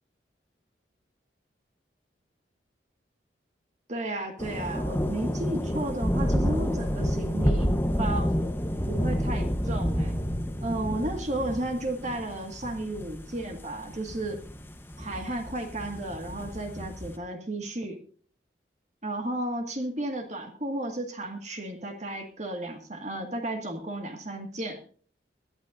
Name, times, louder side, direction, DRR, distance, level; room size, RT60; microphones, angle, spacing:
voice 1, 3.9-7.7 8.0-8.3 8.9-10.2 10.6-14.4 15.0-18.0 19.0-24.8, right 1 dB, 40° right, 4 dB, 1.9 m, -33 dB
sound 1, 4.4-17.2, equal, 10° left, 1.0 m, -29 dB
21.5 x 12.0 x 2.6 m, 0.44 s
head